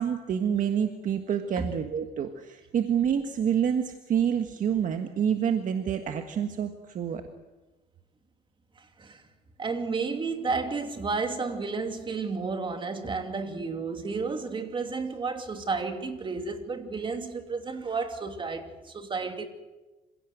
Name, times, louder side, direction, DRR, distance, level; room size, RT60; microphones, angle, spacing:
voice 1, 0.0-7.2, right 8 dB, 50° right, 1.6 m, -27 dB
voice 2, 8.8-9.2 9.6-19.5, right 4 dB, 30° right, 2.7 m, -32 dB
26.5 x 17.0 x 7.9 m
cardioid pair, 110°, 17 cm